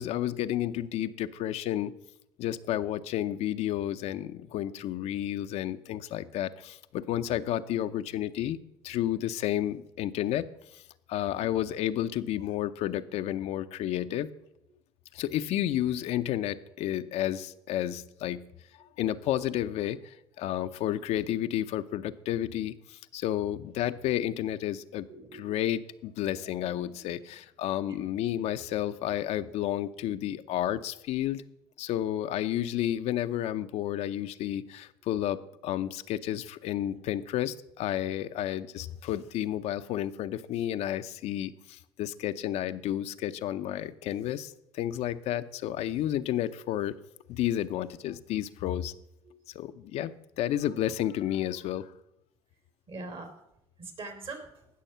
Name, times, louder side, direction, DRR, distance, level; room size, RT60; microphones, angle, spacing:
voice 1, 0.0-1.9 2.4-8.6 8.8-10.5 10.7-10.8 11.1-14.3 15.1-18.5 19.0-25.1 25.4-31.4 31.8-46.9 47.3-48.9 49.5-51.9, left 12 dB, 70° left, 10 dB, 0.7 m, -31 dB
voice 2, 11.1-11.5 14.7-14.8 18.3-18.5 18.8-18.9 20.4-20.5 25.1-25.7 27.8-28.0 28.8-29.0 35.0-35.1 46.9-47.0 48.2-48.3 49.2-49.4 50.6-50.7 52.9-53.4 53.8-54.7, right 3 dB, 50° right, 6 dB, 3.1 m, -45 dB
17.0 x 6.4 x 5.6 m, 0.82 s
supercardioid pair, 80°, 11 cm